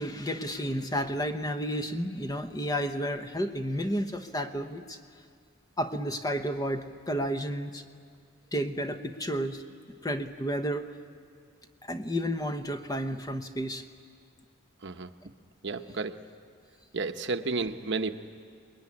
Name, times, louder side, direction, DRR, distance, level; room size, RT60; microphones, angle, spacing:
voice 1, 0.0-5.0 5.8-7.8 8.5-9.6 10.0-10.9 11.8-13.8, equal, 15° left, 7 dB, 1.0 m, -31 dB
voice 2, 15.6-16.2 16.9-18.1, right 3 dB, 55° right, 7 dB, 1.0 m, -31 dB
27.5 x 21.0 x 9.7 m, 2.2 s
head